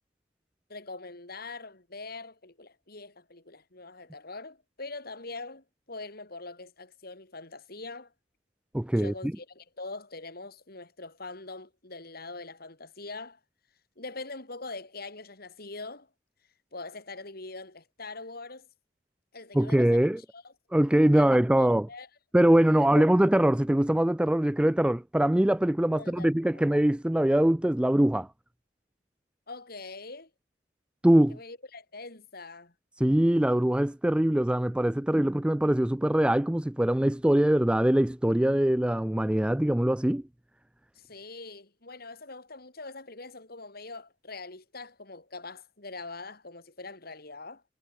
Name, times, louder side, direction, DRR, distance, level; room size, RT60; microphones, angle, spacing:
voice 1, 0.7-8.1 9.0-13.4 14.0-16.1 16.7-18.7 19.3-20.1 20.3-20.5 21.1-21.3 21.5-22.1 22.8-23.2 25.9-26.7 29.5-30.3 31.3-32.7 40.9-47.6, left 3 dB, 55° left, 4.6 m, -43 dB
voice 2, 8.7-9.1 19.5-20.2 20.7-21.9 22.3-28.3 31.0-31.4 33.0-40.2, right 1 dB, 5° right, 0.3 m, -23 dB
head